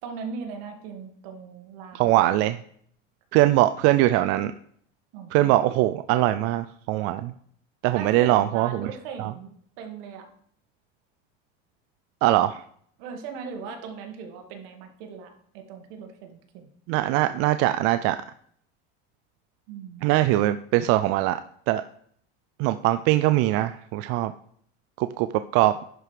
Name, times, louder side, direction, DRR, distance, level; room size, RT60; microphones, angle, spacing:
voice 1, 0.0-2.2 5.1-5.6 7.9-10.3 13.0-16.7 19.7-20.0, right 5 dB, 70° right, 4 dB, 1.9 m, -39 dB
voice 2, 1.9-2.6 3.3-4.5 5.3-7.3 7.8-8.9 9.2-9.3 12.2-12.6 16.9-18.2 20.0-21.4 21.7-21.8 22.6-24.3 25.0-25.3 25.5-25.7, right 15 dB, 50° right, 11 dB, 0.4 m, -21 dB
11.0 x 5.0 x 4.7 m, 0.63 s
cardioid pair, 145°, 29 cm